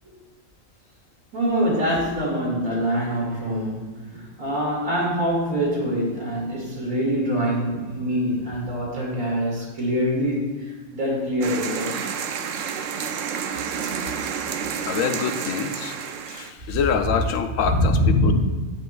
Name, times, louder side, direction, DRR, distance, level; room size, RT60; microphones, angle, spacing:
voice 1, 1.3-12.1 16.7-16.8 17.6-18.3, equal, 90° right, -4 dB, 2.8 m, -24 dB
sound 1, 11.4-16.5, right 7 dB, 70° right, 0.9 m, -30 dB
voice 2, 14.9-16.0 16.3-18.3, left 7 dB, 75° left, 7 dB, 1.0 m, -25 dB
10.0 x 8.2 x 2.3 m, 1.4 s
omnidirectional pair, 1.4 m